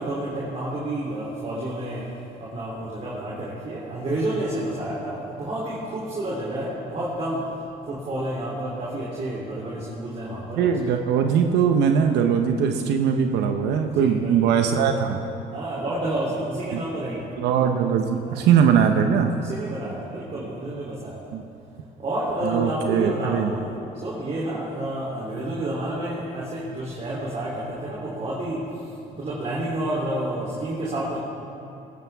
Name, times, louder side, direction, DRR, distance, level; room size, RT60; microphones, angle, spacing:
voice 1, 0.0-2.0 2.4-7.4 7.9-10.7 13.9-14.4 15.5-17.2 18.2-18.5 19.4-21.2 22.0-23.7 24.0-28.6 29.1-31.2, right 1 dB, 40° right, -6 dB, 3.3 m, -29 dB
voice 2, 10.6-15.2 16.7-16.8 17.4-19.3 21.3-21.4 22.4-23.5, right 7 dB, 80° right, 5 dB, 0.9 m, -21 dB
19.5 x 14.5 x 3.6 m, 2.9 s
cardioid pair, 110°, 17 cm